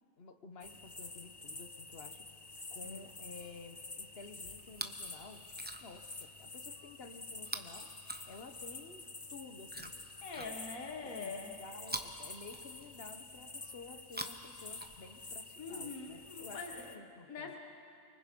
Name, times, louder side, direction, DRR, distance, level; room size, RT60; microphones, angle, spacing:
voice 1, 0.2-2.3 2.7-5.4 5.8-7.9 8.3-9.0 9.3-10.0 10.3-10.6 11.0-17.5, left 4 dB, 45° left, 7 dB, 1.3 m, -52 dB
sound 1, 0.6-17.0, left 3 dB, 20° left, 0.8 m, -49 dB
Chewing mastication, 4.6-5.1 5.4-6.1 7.4-8.8 9.7-10.9 11.8-13.1 14.0-15.4 16.3-16.4, right 1 dB, 10° right, 0.7 m, -46 dB
voice 2, 10.2-11.6 15.6-17.6, left 4 dB, 75° left, 2 dB, 1.9 m, -44 dB
29.0 x 24.5 x 5.3 m, 2.5 s
omnidirectional pair, 1.5 m